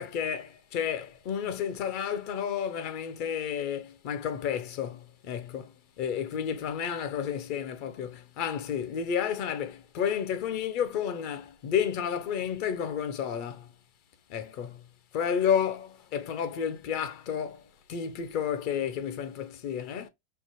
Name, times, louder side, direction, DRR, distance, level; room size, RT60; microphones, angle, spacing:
voice 1, 0.0-13.7 14.3-20.1, left 8 dB, 50° left, 0.6 m, -31 dB
3.2 x 2.1 x 3.0 m
hypercardioid pair, 100°, 0 cm